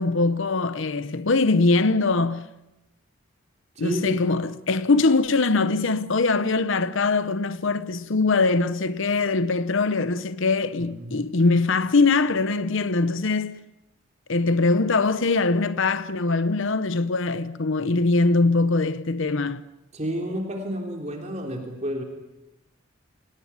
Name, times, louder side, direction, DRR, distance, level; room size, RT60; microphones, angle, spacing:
voice 1, 0.0-2.5 3.8-13.6 14.3-19.6, left 3 dB, 65° left, 0.8 m, -22 dB
voice 2, 3.7-4.2 10.8-11.2 19.9-22.0, equal, 30° right, 3.3 m, -30 dB
26.5 x 18.5 x 9.7 m
head